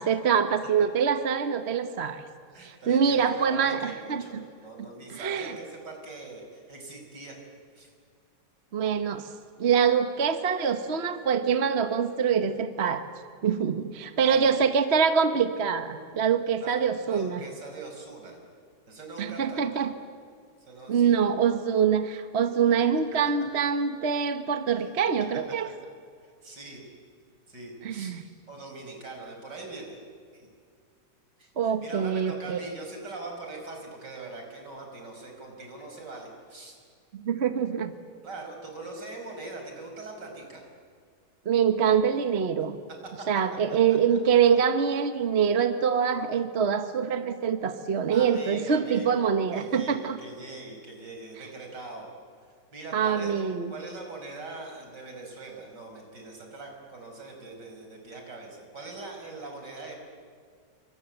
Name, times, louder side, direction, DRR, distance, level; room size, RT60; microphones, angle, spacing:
voice 1, 0.0-2.2 2.6-4.4 5.1-5.5 8.7-9.3 9.6-13.1 13.4-17.4 19.2-19.9 20.9-25.7 27.8-28.2 31.6-32.6 37.1-37.9 41.4-42.8 43.3-50.2 52.9-53.7, right 7 dB, 40° right, 9 dB, 1.3 m, -25 dB
voice 2, 2.5-7.4 7.7-7.9 14.2-14.6 16.6-18.4 18.9-19.8 20.7-21.1 24.8-24.9 26.2-26.8 27.5-28.1 28.5-30.0 30.3-30.5 31.4-36.8 38.2-40.6 43.2-43.3 48.1-49.2 49.5-52.1 52.4-53.4 53.7-59.9, right 3 dB, 75° right, 2 dB, 5.9 m, -42 dB
28.5 x 24.5 x 8.0 m, 2.1 s
omnidirectional pair, 1.9 m